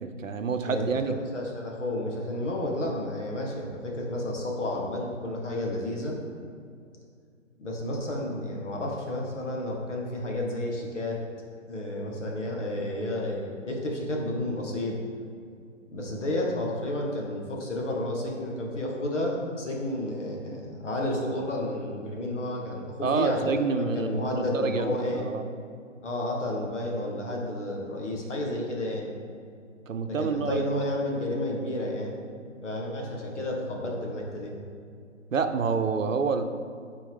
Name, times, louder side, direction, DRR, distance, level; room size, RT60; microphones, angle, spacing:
voice 1, 0.0-1.1 23.0-24.2 24.5-25.4 29.9-30.6 35.3-36.4, right 5 dB, 85° right, 8 dB, 0.7 m, -27 dB
voice 2, 0.7-6.2 7.6-11.2 11.7-15.0 15.9-25.3 26.0-29.1 30.1-32.2 32.6-34.5, left 1 dB, 65° left, -1 dB, 1.8 m, -31 dB
9.0 x 4.5 x 3.6 m, 2.3 s
figure-of-eight pair, 140°, 38 cm